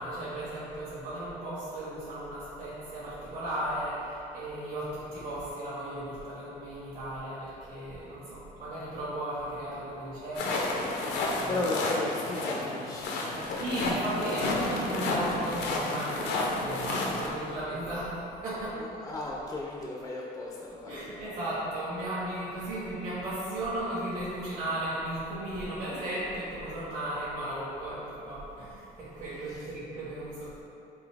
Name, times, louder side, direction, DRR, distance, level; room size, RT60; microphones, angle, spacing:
voice 1, 0.0-11.5 13.6-18.8 20.9-30.5, right 1 dB, 55° right, -11 dB, 1.2 m, -35 dB
sound 1, 10.3-17.3, left 2 dB, 85° left, 0.6 m, -31 dB
voice 2, 11.5-13.6 18.8-21.1 29.5-29.8, left 2 dB, 20° left, -3 dB, 0.4 m, -35 dB
3.9 x 2.7 x 3.4 m, 2.9 s
cardioid pair, 110°, 17 cm